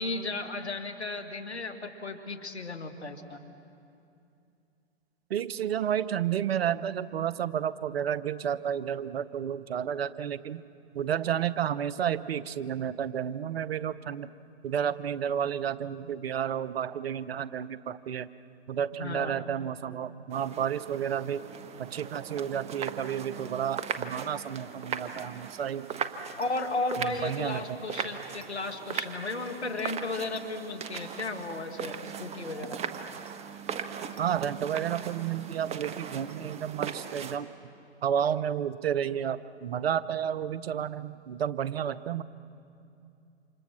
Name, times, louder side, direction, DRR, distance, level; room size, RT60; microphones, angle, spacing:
voice 1, 0.0-3.4 18.9-19.4 26.4-32.8, left 2 dB, 85° left, 7 dB, 2.3 m, -34 dB
voice 2, 5.3-10.6 10.9-14.3 14.6-18.3 18.7-21.4 21.8-25.9 27.0-27.8 34.2-37.5 38.0-42.2, right 9 dB, 65° right, 15 dB, 0.9 m, -31 dB
sound 1, 20.3-37.4, right 7 dB, 20° right, 1.1 m, -39 dB
29.0 x 26.5 x 6.1 m, 2.6 s
figure-of-eight pair, 115°, 32 cm